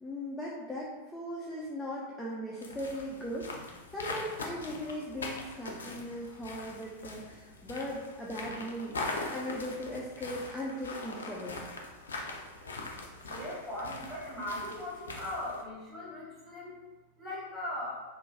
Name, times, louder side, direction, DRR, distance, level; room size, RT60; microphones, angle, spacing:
voice 1, 0.0-9.0 9.3-11.6, equal, 5° left, -6 dB, 0.4 m, -38 dB
sound 1, 2.6-15.6, left 2 dB, 70° left, 0.4 m, -42 dB
voice 2, 13.3-16.8 17.2-18.0, left 1 dB, 10° right, -9 dB, 1.3 m, -39 dB
2.9 x 2.1 x 2.6 m, 1.2 s
figure-of-eight pair, 90°, 0 cm